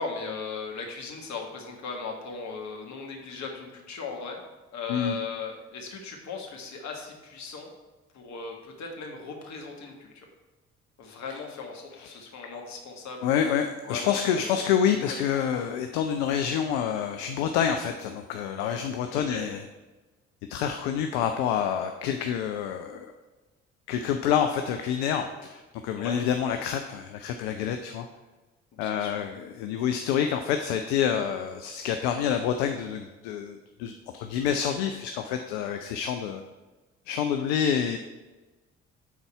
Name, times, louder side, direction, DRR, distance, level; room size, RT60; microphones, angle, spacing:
voice 1, 0.0-4.4 4.7-7.7 8.1-10.2 11.0-13.4 13.8-15.2 19.1-19.4 26.0-26.2 28.8-29.2, left 5 dB, 50° left, 1 dB, 1.6 m, -38 dB
voice 2, 13.2-19.6 20.5-23.1 23.9-28.1 28.8-36.4 37.1-38.0, left 8 dB, 70° left, 6 dB, 0.6 m, -27 dB
9.3 x 4.0 x 4.4 m, 1.2 s
figure-of-eight pair, 50°, 35 cm